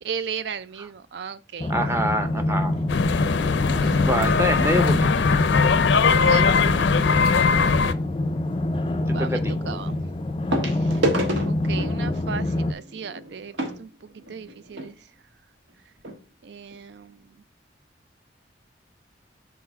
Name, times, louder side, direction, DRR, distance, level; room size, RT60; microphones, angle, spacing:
voice 1, 0.0-1.7 3.8-4.2 6.1-6.5 9.1-10.0 10.7-11.0 11.4-15.0 16.4-17.4, right 6 dB, 70° right, 0.4 m, -36 dB
sound 1, 1.6-12.7, left 1 dB, 25° left, 0.4 m, -26 dB
voice 2, 1.7-2.7 3.9-5.1 9.1-9.6, equal, 15° right, 0.7 m, -25 dB
sound 2, 2.9-7.9, left 5 dB, 80° left, 0.5 m, -20 dB
sound 3, 10.5-14.9 15.7-15.8 16.0-16.2 16.7-16.8, right 1 dB, 85° right, 1.2 m, -30 dB
4.5 x 4.2 x 5.8 m
head